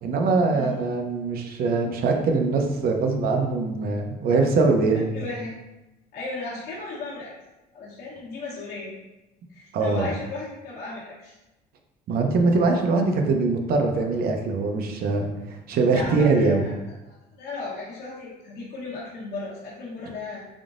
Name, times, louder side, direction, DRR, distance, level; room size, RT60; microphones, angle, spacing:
voice 1, 0.0-5.0 9.7-10.1 12.1-15.3 15.7-16.6, right 3 dB, 65° right, 4 dB, 0.6 m, -22 dB
voice 2, 4.9-5.5 6.1-7.3 7.7-9.0 9.5-11.3 15.9-16.7 17.1-20.4, left 3 dB, 65° left, -7 dB, 1.0 m, -35 dB
3.7 x 3.6 x 2.5 m, 0.99 s
cardioid pair, 110°, 17 cm